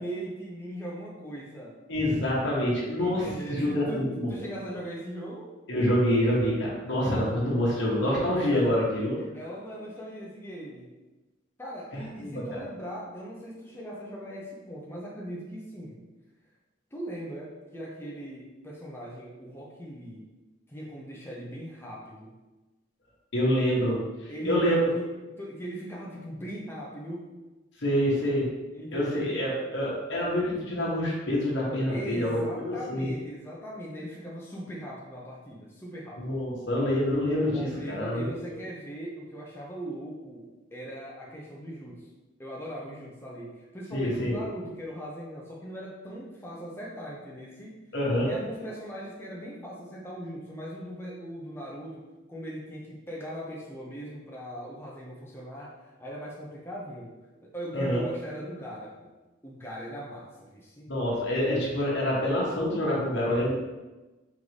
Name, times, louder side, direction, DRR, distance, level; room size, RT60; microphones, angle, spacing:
voice 1, 0.0-1.8 3.0-5.5 9.2-10.9 11.6-16.0 16.9-20.2 20.7-22.4 24.3-25.1 25.4-27.3 28.7-29.5 31.9-36.4 37.5-42.1 42.4-47.8 48.2-52.0 52.3-59.1 59.4-60.9 61.5-61.6, equal, 10° left, -4 dB, 0.6 m, -39 dB
voice 2, 1.9-4.3 5.7-9.2 11.9-12.6 23.3-24.8 27.8-28.5 28.9-32.4 32.6-33.1 36.2-38.3 43.9-44.4 47.9-48.3 57.7-58.0 60.9-63.5, equal, 60° left, -5 dB, 1.2 m, -26 dB
3.9 x 3.6 x 3.2 m, 1.1 s
head